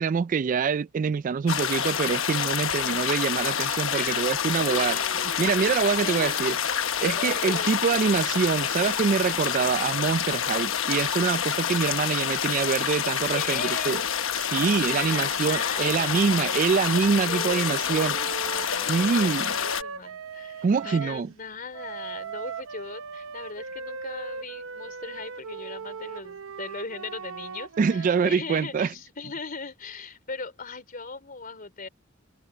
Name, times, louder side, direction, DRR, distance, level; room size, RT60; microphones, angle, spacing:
voice 1, 0.0-5.0 5.4-6.6 7.0-14.0 14.4-18.2 18.9-19.5 20.6-21.3 27.8-28.9, right 5 dB, 40° right, 0.3 m, -25 dB
sound 1, 1.5-19.8, left 8 dB, 70° left, 1.1 m, -28 dB
voice 2, 3.9-4.3 4.7-5.7 6.0-6.7 7.0-8.0 13.3-14.1 14.9-16.6 17.1-31.9, left 4 dB, 45° left, 3.7 m, -38 dB
sound 2, 15.1-21.2 21.7-28.4, right 5 dB, 80° right, 0.9 m, -39 dB
head